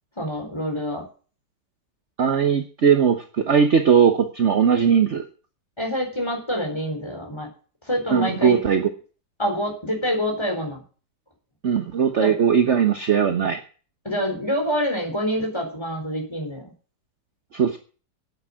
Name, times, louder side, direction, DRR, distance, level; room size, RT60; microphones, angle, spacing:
voice 1, 0.2-1.0 5.8-7.5 7.8-8.6 9.4-10.8 12.2-12.3 14.0-16.7, equal, 15° left, 1 dB, 4.2 m, -26 dB
voice 2, 2.2-5.2 8.1-8.9 11.6-13.6 17.5-17.8, right 7 dB, 45° right, 7 dB, 1.2 m, -19 dB
9.5 x 8.8 x 8.7 m, 0.39 s
omnidirectional pair, 1.9 m